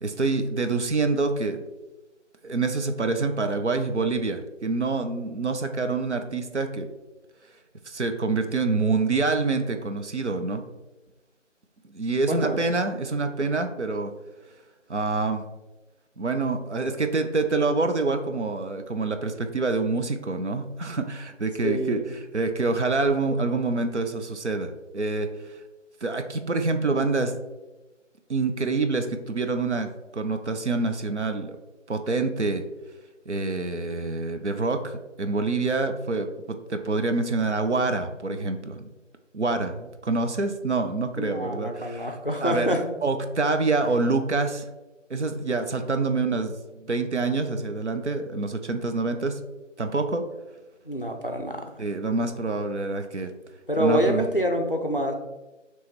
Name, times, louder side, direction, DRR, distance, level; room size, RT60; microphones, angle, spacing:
voice 1, 0.0-1.6 2.4-6.9 7.9-10.6 11.9-14.1 14.9-15.4 16.2-25.6 26.0-27.3 28.3-31.6 31.9-32.6 33.3-38.9 39.3-42.1 42.4-42.7 43.0-44.6 45.1-49.4 49.8-50.2 51.8-53.3 53.8-54.2, right 3 dB, 65° right, 6 dB, 0.6 m, -26 dB
voice 2, 12.3-12.6 21.6-22.1 41.2-42.8 43.8-44.0 50.8-51.7 53.7-55.2, equal, 45° left, 3 dB, 0.4 m, -26 dB
5.3 x 3.0 x 3.0 m, 1.1 s
figure-of-eight pair, 175°, 38 cm